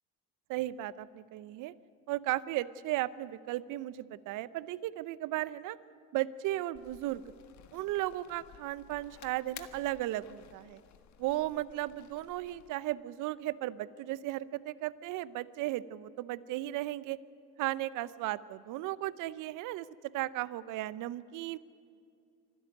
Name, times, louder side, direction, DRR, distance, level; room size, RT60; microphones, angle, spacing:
voice 1, 0.5-1.7 2.1-5.8 6.1-7.2 7.7-10.8 11.2-17.2 17.6-21.6, right 15 dB, 65° right, 18 dB, 0.8 m, -35 dB
sound 1, 6.7-12.7, left 10 dB, 55° left, 1.6 m, -55 dB
25.5 x 13.0 x 9.2 m, 2.4 s
supercardioid pair, 85°, 34 cm